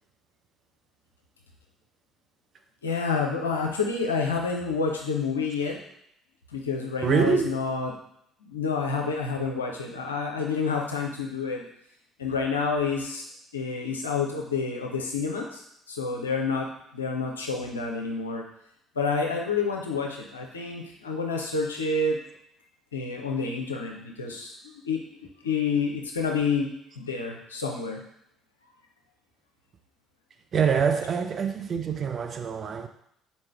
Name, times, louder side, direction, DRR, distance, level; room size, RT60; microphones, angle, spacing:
voice 1, 2.8-5.8 6.5-7.9 8.4-11.6 12.2-13.2 13.5-16.7 16.9-18.4 19.0-22.2 22.9-24.5 24.8-25.0 25.4-26.7 27.0-28.1, left 4 dB, 80° left, 0.5 m, -28 dB
voice 2, 7.0-7.6 30.5-32.9, right 6 dB, 40° right, 0.4 m, -25 dB
4.2 x 3.2 x 3.4 m
figure-of-eight pair, 50°, 0 cm